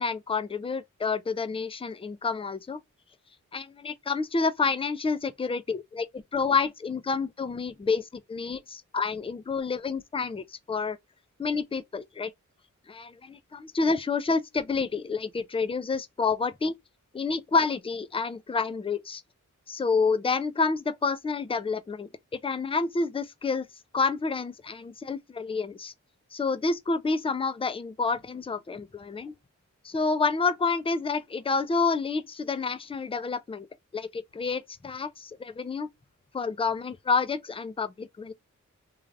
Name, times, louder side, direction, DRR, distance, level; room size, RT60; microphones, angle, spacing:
voice 1, 0.0-2.8 3.5-11.0 11.4-12.3 12.9-16.7 17.1-19.2 19.7-22.1 22.4-23.7 23.9-25.9 26.3-29.3 29.8-33.7 33.9-35.9 36.3-38.3, left 4 dB, 20° left, 0.4 m, -29 dB
3.2 x 2.4 x 2.5 m
wide cardioid pair, 60°, 31 cm